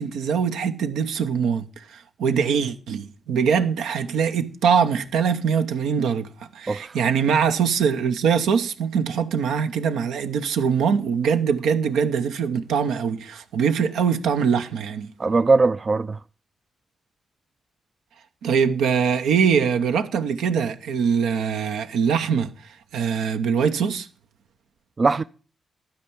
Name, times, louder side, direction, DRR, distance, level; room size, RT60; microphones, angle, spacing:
voice 1, 0.0-15.1 18.4-22.5 22.9-24.1, right 6 dB, 85° right, 0.7 m, -23 dB
voice 2, 15.2-16.2 25.0-25.2, right 3 dB, 45° right, 0.4 m, -20 dB
11.5 x 4.6 x 6.9 m
supercardioid pair, 50°, 0 cm